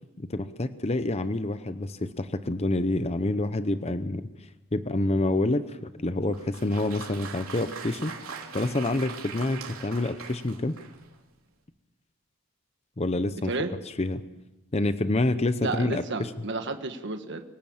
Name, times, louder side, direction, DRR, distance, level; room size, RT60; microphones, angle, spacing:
voice 1, 0.2-4.3 4.7-8.2 8.5-10.7 13.0-13.5 14.0-14.2 14.7-16.3, left 2 dB, 30° left, 11 dB, 0.7 m, -27 dB
Applause, 6.3-11.1, right 5 dB, 80° right, 3.2 m, -41 dB
voice 2, 15.6-17.4, right 3 dB, 55° right, 7 dB, 1.6 m, -31 dB
24.5 x 17.0 x 7.3 m, 1.1 s
head